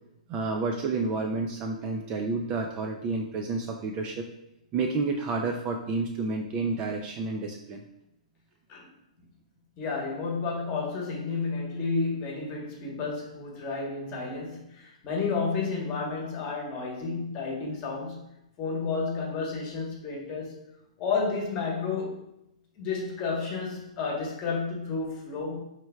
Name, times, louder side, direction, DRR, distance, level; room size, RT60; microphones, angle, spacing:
voice 1, 0.3-4.3 4.7-7.8, right 3 dB, 25° right, 3 dB, 0.3 m, -30 dB
voice 2, 9.8-18.2 18.6-20.6 21.0-22.3 22.8-25.6, left 4 dB, 30° left, -2 dB, 1.1 m, -31 dB
5.6 x 3.2 x 2.2 m, 0.81 s
hypercardioid pair, 150°, 4 cm